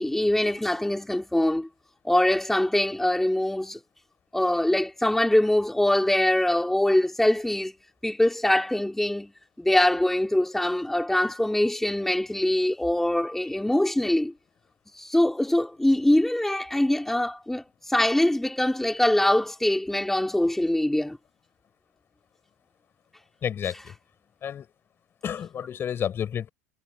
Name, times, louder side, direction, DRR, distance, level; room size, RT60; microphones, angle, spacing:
voice 1, 0.0-1.7 2.0-3.8 4.3-7.7 8.0-9.3 9.6-14.3 15.0-21.2, left 1 dB, 5° left, 4.5 m, -23 dB
voice 2, 23.4-23.9 24.4-24.7 25.2-26.5, left 9 dB, 40° left, 5.6 m, -30 dB
hypercardioid pair, 90°, 6 cm